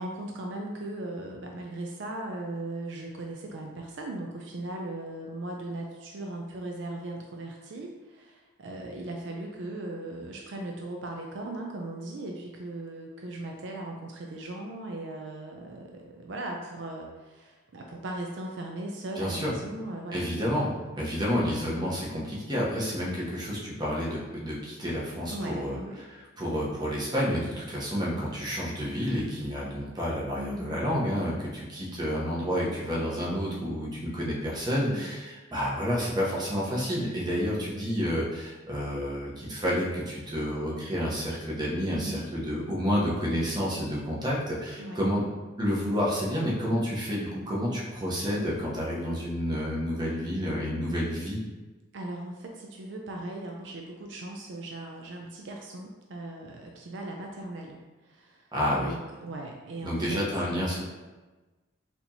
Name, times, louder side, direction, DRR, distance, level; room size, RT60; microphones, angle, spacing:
voice 1, 0.0-20.2 25.3-26.0 30.4-30.9 34.8-35.1 41.9-42.2 44.8-45.0 51.9-60.2, right 2 dB, 65° right, 1 dB, 0.4 m, -38 dB
voice 2, 19.2-19.5 20.1-45.3 45.6-51.4 58.5-58.9 59.8-60.8, equal, 20° right, -5 dB, 0.8 m, -30 dB
4.2 x 2.9 x 2.7 m, 1.2 s
head